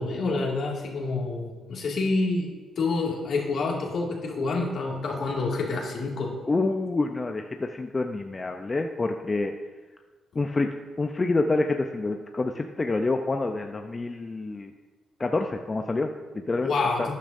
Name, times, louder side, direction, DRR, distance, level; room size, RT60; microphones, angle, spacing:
voice 1, 0.0-6.3 16.6-17.1, left 3 dB, 65° left, -1 dB, 2.2 m, -28 dB
voice 2, 6.5-9.5 10.3-10.7 11.0-14.7 15.2-16.7 17.0-17.1, left 3 dB, 35° left, 5 dB, 0.7 m, -27 dB
12.0 x 10.0 x 2.7 m, 1.3 s
supercardioid pair, 55°, 0 cm